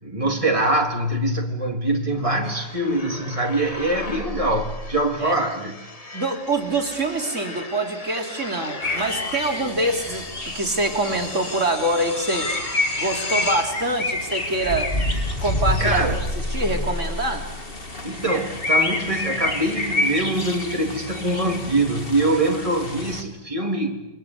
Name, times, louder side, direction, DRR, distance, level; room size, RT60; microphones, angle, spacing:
voice 1, 0.0-5.8 15.8-16.2 18.0-24.1, right 1 dB, 25° right, 1 dB, 3.7 m, -23 dB
sound 1, 2.4-17.9, left 2 dB, 30° left, 1.5 m, -34 dB
voice 2, 6.1-10.3 10.5-12.5 13.0-14.9 15.4-16.0 16.4-17.5, right 2 dB, 65° right, 2 dB, 3.7 m, -25 dB
sound 2, 8.8-23.2, left 2 dB, 45° left, 3.0 m, -28 dB
29.0 x 24.5 x 8.3 m, 0.95 s
omnidirectional pair, 1.4 m